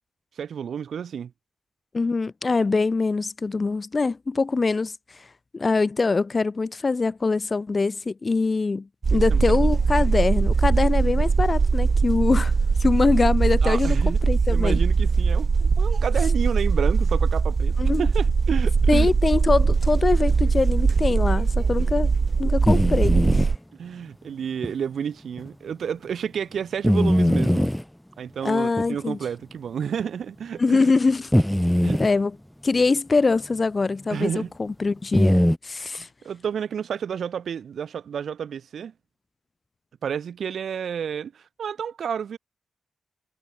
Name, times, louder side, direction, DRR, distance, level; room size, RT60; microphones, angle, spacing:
voice 1, 0.4-1.3 9.3-9.6 13.6-14.2 14.5-19.1 21.7-21.9 23.8-27.7 28.2-30.9 31.8-32.0 34.1-34.5 35.9-38.9 40.0-42.4, right 8 dB, 65° right, 2.7 m, -30 dB
voice 2, 1.9-4.9 5.5-12.5 12.8-14.8 17.8-18.1 18.9-22.1 22.4-23.5 28.4-29.2 30.6-31.3 32.0-32.3 32.6-34.3 34.6-36.1, left 3 dB, 30° left, 0.7 m, -23 dB
sound 1, 9.0-23.6, right 4 dB, 35° right, 2.7 m, -21 dB
sound 2, 22.7-23.5 24.6-24.7 25.4-25.5 26.8-27.8 28.8-28.9 30.0-30.1 31.3-32.1 35.1-35.6, equal, 5° left, 0.3 m, -20 dB
wide cardioid pair, 145°, 0 cm